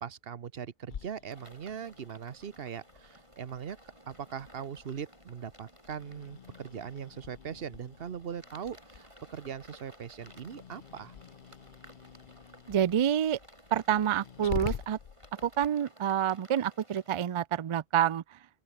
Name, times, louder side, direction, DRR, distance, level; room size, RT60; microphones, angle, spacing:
voice 1, 0.0-3.8 4.1-11.1, right 7 dB, 70° right, 1.1 m, -40 dB
Growling, 0.9-15.7, left 8 dB, 55° left, 0.9 m, -46 dB
sound 1, 1.3-17.2, right 1 dB, 30° right, 7.8 m, -57 dB
voice 2, 12.7-13.4 13.7-15.0 15.4-18.2, right 9 dB, 55° right, 0.3 m, -28 dB
open air
omnidirectional pair, 1.0 m